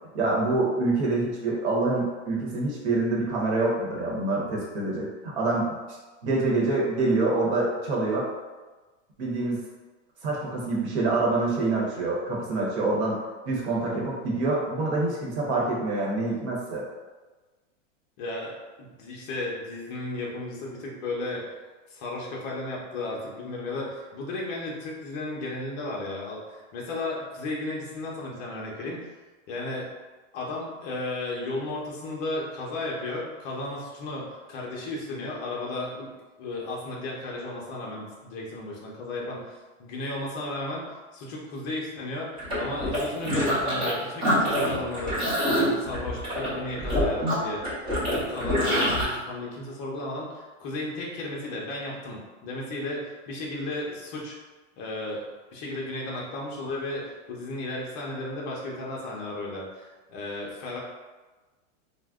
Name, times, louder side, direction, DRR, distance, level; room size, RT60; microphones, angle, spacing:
voice 1, 0.1-5.7 6.2-8.3 9.2-9.6 10.2-13.2 13.5-16.8, right 2 dB, 55° right, -4 dB, 1.0 m, -26 dB
voice 2, 18.2-29.0 29.5-29.9 30.3-36.1 36.4-45.2 45.4-47.6 48.0-54.4 54.7-55.2 55.5-60.8, left 2 dB, 30° left, -3 dB, 0.6 m, -34 dB
sound 1, 42.4-43.9 44.2-49.0, equal, 15° right, 0.7 m, -26 dB
2.5 x 2.1 x 3.5 m, 1.2 s
supercardioid pair, 155°, 38 cm